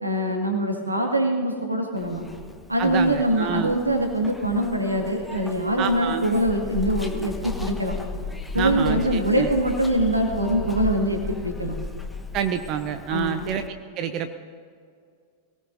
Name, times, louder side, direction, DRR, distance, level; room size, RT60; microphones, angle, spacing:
voice 1, 0.0-2.3 2.7-8.0 8.5-11.8 13.1-13.4, right 1 dB, 85° right, 2 dB, 2.0 m, -23 dB
Zipper (clothing), 2.0-13.7, left 2 dB, 5° left, 1.2 m, -35 dB
voice 2, 2.8-3.7 5.8-6.3 8.5-9.5 12.3-14.3, right 8 dB, 35° right, 9 dB, 0.7 m, -28 dB
23.5 x 18.5 x 2.7 m, 2.2 s
figure-of-eight pair, 90°, 0 cm